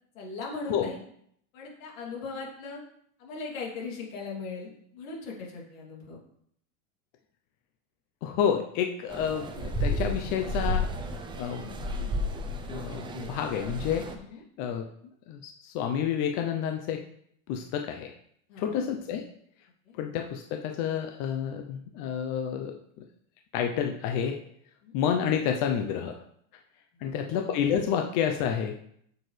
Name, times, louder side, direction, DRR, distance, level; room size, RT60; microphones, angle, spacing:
voice 1, 0.1-1.0 1.5-2.8 3.2-6.2 14.1-14.4 18.5-18.8 19.8-19.9 24.8-25.0 27.0-27.3, left 4 dB, 80° left, -2 dB, 3.0 m, -39 dB
voice 2, 8.2-10.9 11.4-12.2 12.7-14.1 14.6-14.9 15.3-17.0 17.5-18.1 18.6-19.2 20.0-22.7 23.5-24.4 24.9-26.2 27.0-28.7, left 8 dB, 45° left, 4 dB, 0.7 m, -29 dB
sound 1, 9.1-14.1, equal, 10° right, 0.5 m, -32 dB
8.3 x 6.7 x 3.3 m, 0.69 s
supercardioid pair, 155°, 39 cm